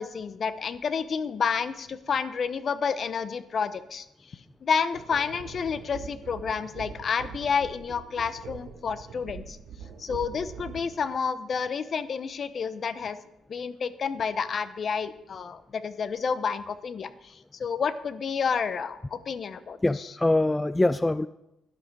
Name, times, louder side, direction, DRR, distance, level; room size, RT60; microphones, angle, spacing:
voice 1, 0.0-9.6 10.0-13.2 13.5-20.1, left 6 dB, 50° left, 14 dB, 0.8 m, -30 dB
sound 1, 4.9-11.1, right 6 dB, 85° right, 2.6 m, -43 dB
voice 2, 19.8-21.3, left 2 dB, 15° left, 14 dB, 0.3 m, -23 dB
11.5 x 11.0 x 4.7 m, 0.88 s
cardioid pair, 90°, 0 cm